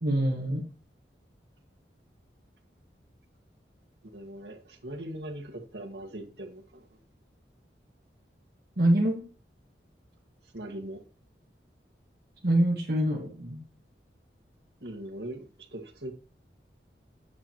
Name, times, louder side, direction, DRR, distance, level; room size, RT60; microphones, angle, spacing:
voice 1, 0.0-0.6 8.8-9.2 12.4-13.6, right 1 dB, 60° right, 1.5 m, -25 dB
voice 2, 4.1-7.0 10.5-11.0 14.8-16.1, right 1 dB, 75° right, 1.8 m, -40 dB
10.5 x 8.3 x 3.0 m
head